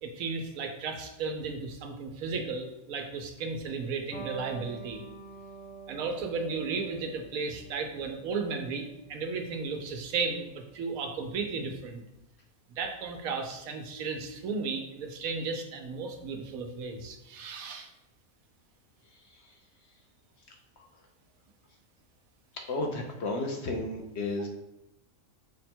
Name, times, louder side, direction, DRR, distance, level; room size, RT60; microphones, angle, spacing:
voice 1, 0.0-5.0 5.9-12.0 12.8-17.9, right 4 dB, 85° right, 4 dB, 1.1 m, -34 dB
Electric guitar, 4.1-11.3, right 4 dB, 80° left, 2.2 m, -47 dB
voice 2, 19.1-19.6 20.8-20.9 22.5-24.5, left 2 dB, 65° left, 2 dB, 0.8 m, -34 dB
5.2 x 2.2 x 4.3 m, 0.89 s
omnidirectional pair, 1.4 m